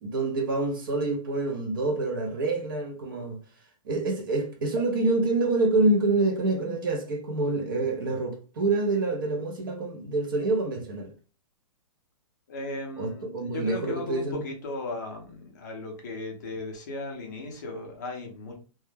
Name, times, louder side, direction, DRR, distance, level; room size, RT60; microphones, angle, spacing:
voice 1, 0.0-3.4 3.9-11.1 13.0-14.4, right 2 dB, 35° right, 0.5 m, -27 dB
voice 2, 12.5-18.6, left 2 dB, 30° left, 0.5 m, -36 dB
2.1 x 2.1 x 3.1 m
hypercardioid pair, 175°, 19 cm